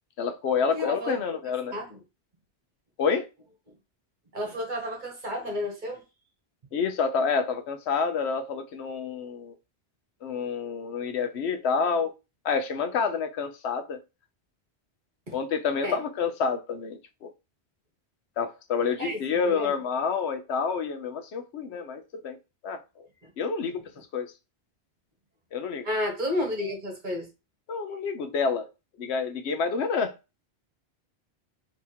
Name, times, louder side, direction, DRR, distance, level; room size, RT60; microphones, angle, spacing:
voice 1, 0.2-1.7 3.0-3.3 6.7-9.5 10.2-12.1 12.4-14.0 15.3-17.3 18.4-22.4 22.6-23.1 23.4-24.3 25.5-25.9 27.7-28.7 29.0-30.1, left 5 dB, 80° left, 0.9 m, -28 dB
voice 2, 0.7-1.2 1.7-2.0 4.3-6.0 15.3-15.4 15.8-16.0 19.0-19.7 23.2-23.3 25.8-27.3, left 1 dB, 45° right, 1.4 m, -31 dB
3.5 x 3.0 x 4.3 m
omnidirectional pair, 1.1 m